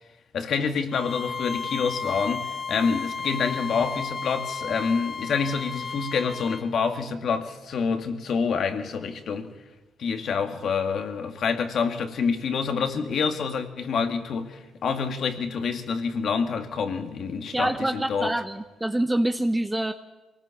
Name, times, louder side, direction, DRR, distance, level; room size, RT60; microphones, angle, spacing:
voice 1, 0.3-9.5 10.0-18.3, left 5 dB, 60° left, 6 dB, 2.2 m, -27 dB
Bowed string instrument, 0.9-6.7, left 5 dB, 30° left, 1.4 m, -33 dB
voice 2, 17.5-19.9, right 1 dB, 10° right, 7 dB, 0.8 m, -26 dB
23.5 x 19.0 x 7.2 m, 1.1 s
cardioid pair, 90°, 0 cm